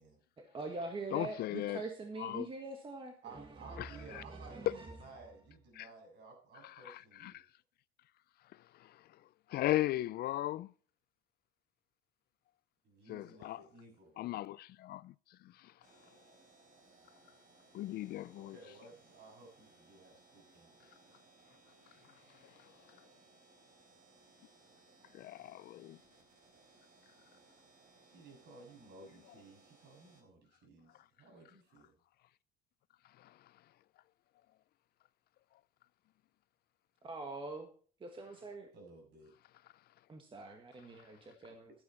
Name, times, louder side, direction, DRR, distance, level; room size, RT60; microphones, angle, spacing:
voice 1, 0.4-3.4 3.7-4.9 37.0-37.7 38.0-38.7 40.1-41.7, right 3 dB, 25° right, 1.5 m, -44 dB
voice 2, 1.1-1.8 2.2-2.5 3.8-4.2 4.7-4.8 5.7-5.9 6.6-7.4 8.8-9.0 9.5-10.7 13.1-13.6 14.2-15.7 17.7-18.6 25.1-26.0 33.2-33.4, left 15 dB, 50° left, 0.4 m, -37 dB
voice 3, 3.2-7.4 12.8-14.1 18.3-21.0 28.0-31.9 38.7-39.3, right 3 dB, 60° right, 7.2 m, -56 dB
sound 1, 15.8-30.2, right 2 dB, 40° right, 4.1 m, -64 dB
12.0 x 9.4 x 4.3 m
cardioid pair, 115°, 20 cm